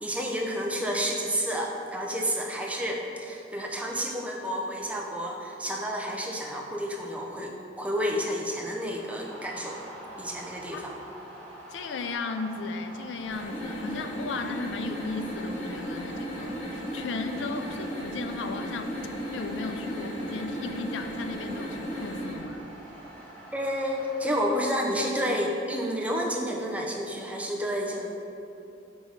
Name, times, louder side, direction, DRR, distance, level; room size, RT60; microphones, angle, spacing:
voice 1, 0.0-9.8 10.2-10.9 23.5-28.1, equal, 10° right, -1 dB, 0.6 m, -30 dB
sound 1, 7.0-24.6, right 1 dB, 10° left, 1.3 m, -46 dB
voice 2, 11.7-19.0 19.3-22.6, left 4 dB, 85° left, 7 dB, 0.4 m, -35 dB
sound 2, 13.2-22.4, equal, 40° left, 1.1 m, -35 dB
4.8 x 3.8 x 5.5 m, 2.8 s
head